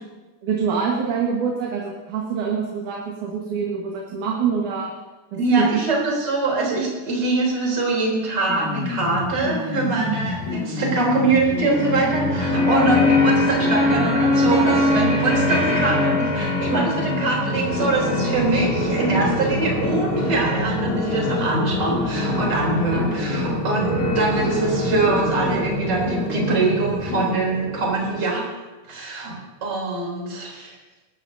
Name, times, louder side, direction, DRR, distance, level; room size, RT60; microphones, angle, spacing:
voice 1, 0.4-4.9 5.3-5.7 9.8-10.2, right 6 dB, 90° right, -2 dB, 3.1 m, -25 dB
voice 2, 5.4-28.5 28.9-29.3 29.6-30.8, right 3 dB, 35° right, -3 dB, 4.0 m, -23 dB
sound 1, 8.5-27.3, left 3 dB, 90° left, 3.2 m, -29 dB
sound 2, 11.7-28.2, left 1 dB, 15° left, 4.3 m, -24 dB
25.0 x 13.5 x 2.7 m, 1.2 s
omnidirectional pair, 3.4 m